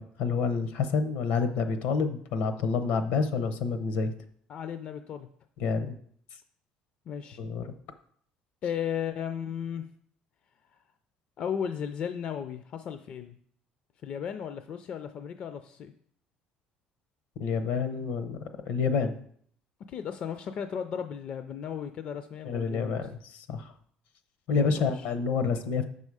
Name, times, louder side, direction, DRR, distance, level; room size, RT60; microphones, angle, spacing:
voice 1, 0.0-4.1 5.6-5.9 7.4-7.7 17.4-19.1 22.4-23.7 24.5-25.8, left 5 dB, 75° left, 9 dB, 0.8 m, -28 dB
voice 2, 4.5-5.3 7.1-7.4 8.6-9.9 11.4-13.4 14.0-15.9 19.9-23.1 24.5-25.1, left 8 dB, 45° left, 9 dB, 0.4 m, -35 dB
6.9 x 5.4 x 4.8 m, 0.62 s
cardioid pair, 145°, 3 cm